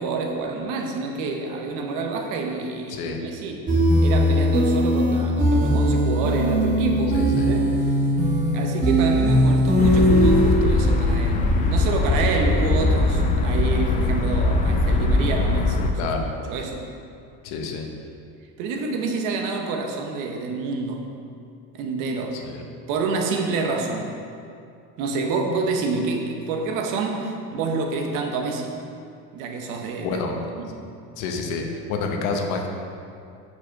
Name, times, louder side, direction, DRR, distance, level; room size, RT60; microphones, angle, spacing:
voice 1, 0.0-3.7 4.0-8.0 8.5-16.0 16.5-16.8 18.6-21.0 21.7-22.4 22.9-24.2 25.0-28.8 29.3-30.2 30.5-30.7, right 3 dB, 70° right, 3 dB, 0.9 m, -28 dB
voice 2, 2.9-3.2 7.1-7.5 16.0-16.3 17.4-17.9 22.4-22.6 30.0-30.3 31.2-32.7, left 4 dB, 65° left, 3 dB, 0.9 m, -28 dB
sound 1, 3.7-10.5, equal, 25° right, 1.3 m, -19 dB
sound 2, 9.8-15.9, left 2 dB, 25° left, 0.4 m, -21 dB
4.9 x 4.8 x 5.1 m, 2.5 s
cardioid pair, 150°, 33 cm